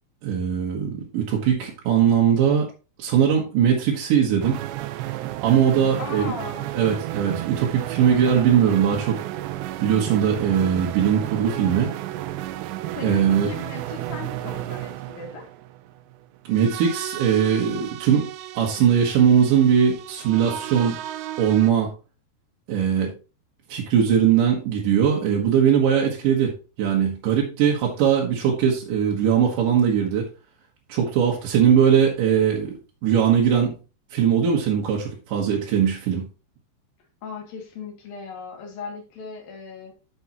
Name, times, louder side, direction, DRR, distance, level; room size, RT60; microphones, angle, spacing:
voice 1, 0.2-2.7 3.0-4.6 5.4-6.3 6.7-9.2 9.8-11.9 13.0-13.5 16.5-18.3 18.5-21.0 21.4-21.9 22.7-23.1 23.7-30.3 30.9-33.7 34.1-36.3, right 8 dB, 60° right, -2 dB, 2.5 m, -20 dB
sound 1, 4.4-21.7, right 14 dB, 85° right, 2.8 m, -33 dB
voice 2, 6.0-6.7 12.9-15.4 37.2-39.9, left 5 dB, 60° left, 0 dB, 3.9 m, -37 dB
10.0 x 6.9 x 3.0 m, 0.33 s
omnidirectional pair, 5.1 m